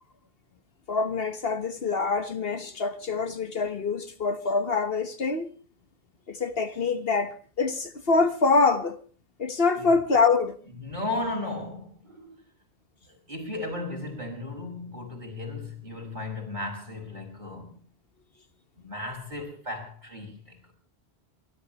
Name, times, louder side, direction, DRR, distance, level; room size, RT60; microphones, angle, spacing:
voice 1, 0.9-5.5 6.3-9.0 9.4-10.6, left 4 dB, 65° left, 1.5 m, -25 dB
voice 2, 10.8-12.4 13.1-17.7 18.8-20.7, left 2 dB, 45° right, 6.2 m, -35 dB
29.0 x 13.0 x 3.0 m
omnidirectional pair, 1.1 m